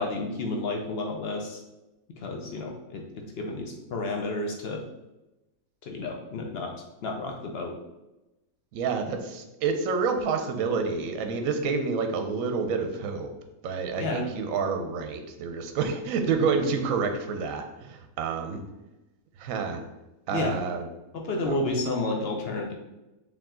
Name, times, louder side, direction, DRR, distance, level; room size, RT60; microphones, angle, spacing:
voice 1, 0.0-1.6 2.2-4.8 5.9-6.7 7.0-7.7 14.0-14.3 20.3-20.6 21.1-22.7, left 2 dB, 60° left, 1 dB, 0.6 m, -31 dB
voice 2, 8.7-13.3 13.6-18.6 19.4-19.8 20.3-20.9 21.5-21.6, right 5 dB, 70° right, 5 dB, 0.9 m, -28 dB
4.6 x 2.9 x 3.7 m, 0.99 s
omnidirectional pair, 1.6 m